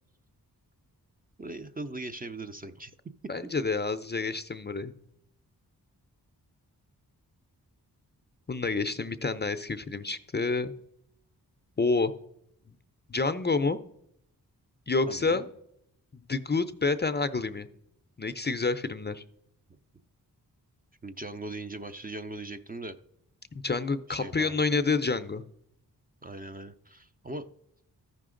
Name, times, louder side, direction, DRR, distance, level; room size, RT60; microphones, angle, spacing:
voice 1, 1.4-2.9 3.4-3.5 15.1-15.4 21.0-23.0 24.1-24.6 26.2-27.5, right 2 dB, 20° right, 8 dB, 0.5 m, -40 dB
voice 2, 3.3-5.0 8.5-10.7 11.8-12.1 13.1-13.8 14.9-15.5 16.3-17.7 18.2-19.2 23.5-25.4, left 4 dB, 25° left, 10 dB, 0.5 m, -28 dB
13.5 x 5.8 x 3.8 m, 0.75 s
cardioid pair, 55°, 40 cm